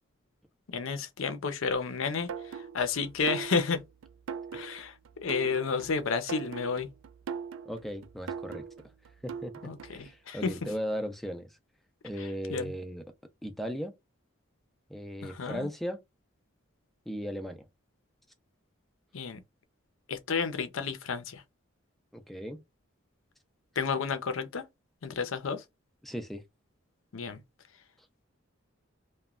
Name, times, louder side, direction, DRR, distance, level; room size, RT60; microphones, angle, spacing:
voice 1, 0.7-3.8 4.5-6.9 9.6-10.6 12.2-12.7 15.2-15.7 19.1-19.4 20.1-21.4 23.8-24.7 25.0-25.6 27.1-27.4, left 5 dB, 75° left, 0.6 m, -31 dB
sound 1, 2.3-10.1, right 6 dB, 70° right, 0.3 m, -41 dB
voice 2, 7.7-8.6 9.2-9.5 9.9-11.6 12.0-13.0 13.4-13.9 14.9-16.0 17.1-17.7 22.1-22.6 26.0-26.4, equal, ahead, 0.4 m, -37 dB
3.0 x 2.2 x 2.3 m
head